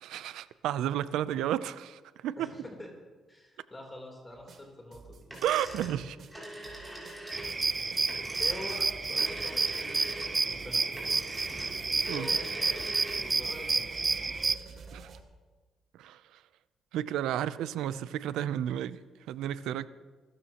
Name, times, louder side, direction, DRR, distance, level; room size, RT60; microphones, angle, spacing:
voice 1, 0.0-2.5 5.4-6.2 12.1-12.3 14.9-15.1 15.9-16.4 16.9-19.9, right 11 dB, 85° right, 15 dB, 0.6 m, -32 dB
voice 2, 2.4-2.9 3.3-5.2 7.6-7.9 8.4-10.9 12.1-13.9, left 1 dB, 20° left, 0 dB, 3.6 m, -45 dB
sound 1, 4.3-15.2, right 4 dB, 60° right, 1.8 m, -50 dB
sound 2, 5.3-13.4, right 1 dB, 5° right, 6.2 m, -44 dB
sound 3, 7.3-14.6, right 4 dB, 30° right, 0.6 m, -30 dB
27.5 x 13.5 x 3.0 m, 1.3 s
cardioid pair, 90°, 0 cm